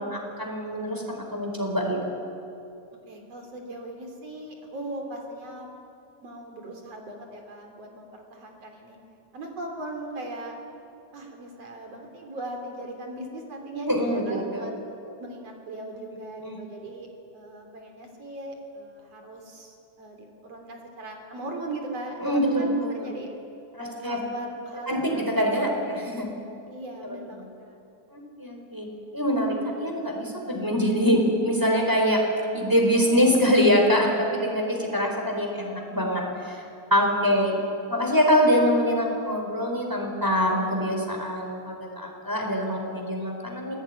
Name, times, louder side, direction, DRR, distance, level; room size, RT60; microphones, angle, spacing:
voice 1, 0.0-2.0 13.9-14.7 16.0-16.1 16.4-16.6 22.2-23.1 23.7-24.2 24.9-26.3 27.0-27.2 28.1-28.9 29.1-32.2 32.5-36.6 36.9-37.6 37.9-43.7, equal, 5° right, 0 dB, 4.3 m, -24 dB
voice 2, 3.1-5.7 6.2-9.0 9.3-10.6 11.1-14.7 15.2-17.1 17.3-23.3 23.8-25.3 26.7-27.8, right 1 dB, 50° right, 3 dB, 4.3 m, -38 dB
27.5 x 19.0 x 9.7 m, 2.7 s
omnidirectional pair, 3.6 m